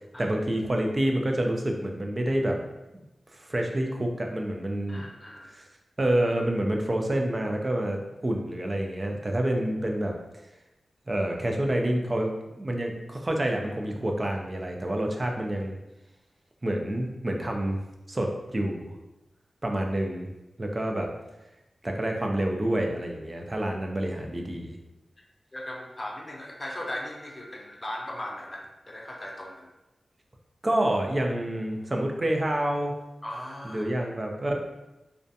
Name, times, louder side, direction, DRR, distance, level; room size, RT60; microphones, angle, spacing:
voice 1, 0.2-2.6 3.4-5.0 5.5-5.7 6.0-10.1 11.1-12.3 12.6-15.8 16.6-17.8 18.1-18.9 19.6-20.3 20.6-21.1 21.8-24.8 30.6-32.9 33.6-34.5, right 1 dB, 30° right, 2 dB, 0.4 m, -28 dB
voice 2, 4.9-5.5 25.2-25.3 25.5-29.7 33.2-33.9, left 1 dB, 25° left, -1 dB, 0.5 m, -38 dB
2.4 x 2.2 x 2.6 m, 0.98 s
wide cardioid pair, 85°, 0 cm